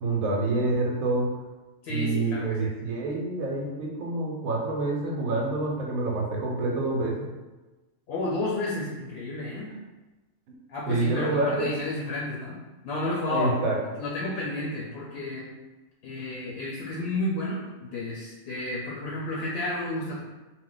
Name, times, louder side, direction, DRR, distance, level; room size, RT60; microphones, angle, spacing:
voice 1, 0.0-1.3 1.9-7.3 10.9-11.7 13.3-13.8, right 2 dB, 90° right, -1 dB, 1.1 m, -27 dB
voice 2, 1.8-2.7 8.1-9.7 10.7-13.6 14.0-15.5 16.0-20.2, left 2 dB, 65° left, -4 dB, 0.7 m, -31 dB
2.4 x 2.1 x 3.8 m, 1.1 s
omnidirectional pair, 1.4 m